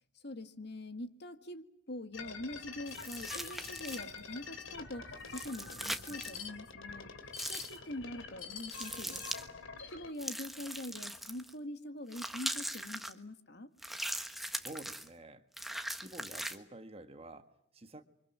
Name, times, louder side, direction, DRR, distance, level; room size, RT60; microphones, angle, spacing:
voice 1, 0.2-7.1 7.5-9.2 9.9-13.7, left 1 dB, 55° left, 10 dB, 1.8 m, -44 dB
sound 1, 2.1-10.1, left 5 dB, 75° left, 3.1 m, -46 dB
sound 2, 2.9-4.2 5.3-6.4 7.3-7.8 8.7-9.4 10.2-11.5 12.1-13.1 13.8-15.1 15.5-16.6, right 1 dB, ahead, 1.3 m, -40 dB
voice 2, 14.6-15.5 15.9-18.0, right 1 dB, 30° right, 8 dB, 1.6 m, -49 dB
29.0 x 25.0 x 7.5 m, 0.72 s
head